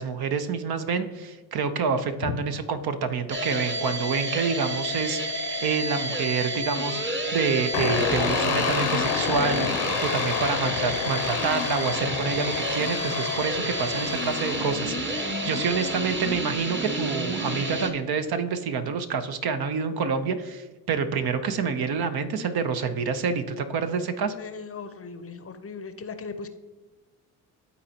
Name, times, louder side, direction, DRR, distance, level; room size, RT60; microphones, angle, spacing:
voice 1, 0.0-24.3, right 5 dB, 50° right, 9 dB, 0.8 m, -28 dB
sound 1, 3.3-17.9, right 1 dB, 25° right, 1.2 m, -30 dB
sound 2, 7.7-16.4, left 9 dB, 60° left, 0.8 m, -30 dB
voice 2, 24.4-26.5, left 5 dB, 30° left, 9 dB, 0.7 m, -36 dB
12.5 x 4.1 x 2.8 m, 1.2 s
hypercardioid pair, 55°, 47 cm